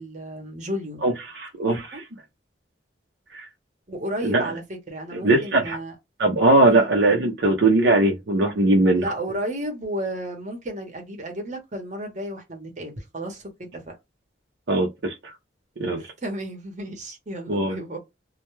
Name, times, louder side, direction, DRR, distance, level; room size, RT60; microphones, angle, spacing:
voice 1, 0.0-1.0 1.7-2.0 3.9-5.9 6.6-6.9 8.9-14.0 16.0-18.0, right 1 dB, 40° right, 0.8 m, -33 dB
voice 2, 1.0-1.8 3.3-3.4 4.2-4.5 5.2-5.8 6.2-9.0 14.7-15.3 15.8-16.0 17.5-17.7, right 2 dB, 70° right, 0.6 m, -20 dB
2.2 x 2.1 x 3.0 m
head